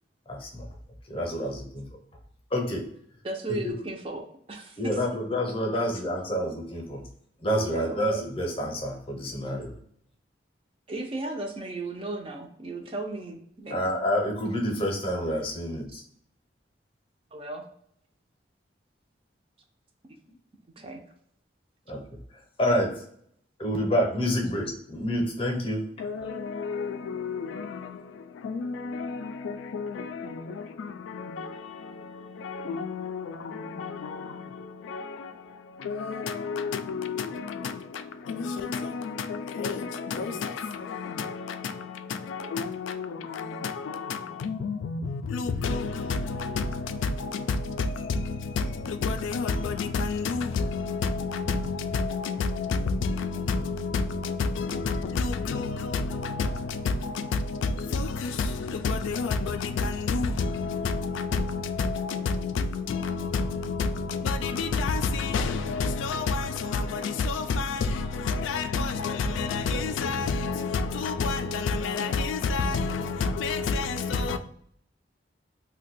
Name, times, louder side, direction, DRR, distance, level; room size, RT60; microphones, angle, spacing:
voice 1, 0.3-0.7 1.1-1.9 2.5-2.8 4.8-7.1 7.4-9.7 13.7-16.0 21.9-22.0 22.6-23.0 23.6-25.9, equal, 30° left, 0.6 m, -28 dB
voice 2, 3.2-5.0 5.3-5.4 7.6-8.0 10.9-13.8 15.9-16.0 17.3-17.6 20.8-21.0, right 2 dB, 30° right, 0.4 m, -35 dB
voice 3, 26.0-74.4, left 4 dB, 85° left, 0.3 m, -30 dB
2.6 x 2.2 x 4.0 m
head